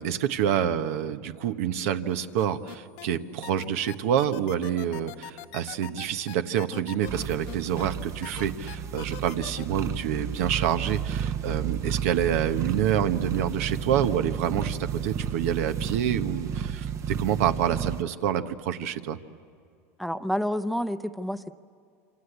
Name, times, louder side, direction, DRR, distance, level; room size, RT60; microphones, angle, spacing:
voice 1, 0.0-19.2, right 9 dB, 75° right, 9 dB, 1.2 m, -27 dB
sound 1, 2.4-3.1 3.4-7.8 8.2-9.6, left 16 dB, 65° left, 1.1 m, -41 dB
sound 2, 7.1-18.0, right 8 dB, 40° right, 1.0 m, -32 dB
voice 2, 20.0-21.5, equal, ahead, 11 dB, 0.8 m, -29 dB
26.5 x 26.5 x 8.2 m, 2.4 s
supercardioid pair, 110°, 8 cm